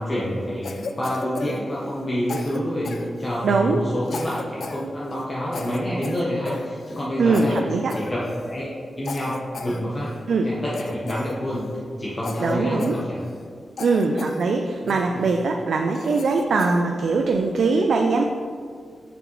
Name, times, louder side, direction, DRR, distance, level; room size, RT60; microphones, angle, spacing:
voice 1, 0.0-7.6 7.9-8.2 8.5-8.7 9.0-10.1 10.4-11.7 12.0-13.2 14.8-15.2, equal, 30° left, -7 dB, 1.0 m, -28 dB
Cough, 0.6-2.0 2.3-3.6 4.1-4.9 5.1-5.2 5.5-7.1 7.3-7.6 7.9-8.6 9.0-10.2 10.7-11.8 12.2-13.5 13.8-14.4 14.9-15.4 15.9-16.8, left 4 dB, 65° left, 0.4 m, -35 dB
voice 2, 3.4-3.8 7.2-7.9 10.3-10.5 12.4-12.9 13.8-18.3, right 4 dB, 75° right, 3 dB, 0.4 m, -21 dB
6.7 x 6.1 x 3.1 m, 2.1 s
wide cardioid pair, 120°, 0 cm